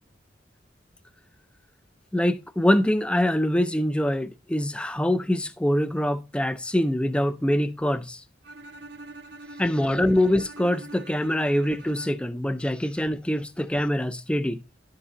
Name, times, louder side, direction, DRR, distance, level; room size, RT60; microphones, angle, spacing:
voice 1, 2.1-8.2 9.6-14.6, left 1 dB, 5° left, 0.4 m, -24 dB
Bowed string instrument, 8.4-12.4, right 2 dB, 65° right, 0.7 m, -44 dB
11.5 x 6.7 x 2.8 m
head